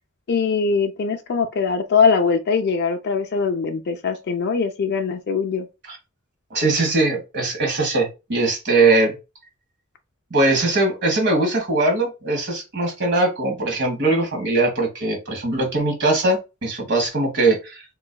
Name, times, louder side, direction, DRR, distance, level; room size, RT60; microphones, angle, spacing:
voice 1, 0.3-5.7, left 5 dB, 50° left, 0.4 m, -21 dB
voice 2, 6.5-9.1 10.3-17.8, right 2 dB, 55° right, 1.4 m, -21 dB
3.8 x 3.0 x 2.2 m
head